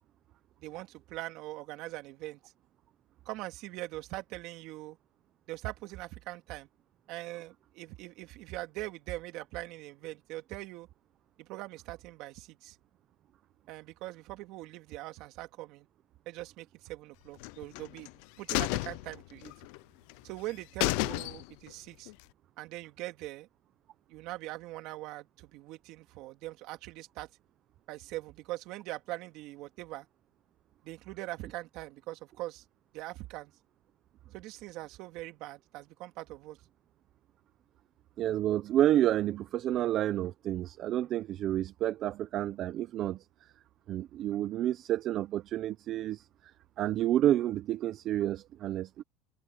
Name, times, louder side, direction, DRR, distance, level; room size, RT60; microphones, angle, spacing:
voice 1, 0.6-2.5 3.2-5.0 5.5-6.7 7.1-10.9 11.4-12.8 13.7-15.9 16.3-18.1 18.4-19.5 20.2-22.1 22.6-23.5 24.1-27.3 27.9-30.1 30.8-32.6 32.9-33.5 34.3-36.6, right 18 dB, 65° right, 2.6 m, -42 dB
sound 1, 17.4-18.1 18.5-19.8 20.1-20.2 20.5-20.6 20.8-21.7 22.1-22.2, left 24 dB, 75° left, 0.6 m, -32 dB
voice 2, 38.2-43.5 43.9-46.5 46.8-49.0, right 12 dB, 50° right, 0.7 m, -30 dB
cardioid pair, 130°, 0 cm